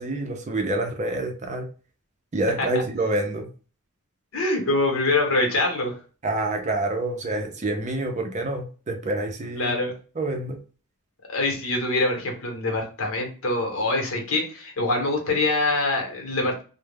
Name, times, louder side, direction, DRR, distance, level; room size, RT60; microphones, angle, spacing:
voice 1, 0.0-1.7 2.3-3.5 6.2-9.7 10.2-10.6, right 2 dB, 35° right, 4 dB, 0.5 m, -27 dB
voice 2, 4.3-5.9 9.6-9.9 11.3-16.6, left 2 dB, 65° left, 2 dB, 0.9 m, -24 dB
2.3 x 2.0 x 3.3 m, 0.36 s
head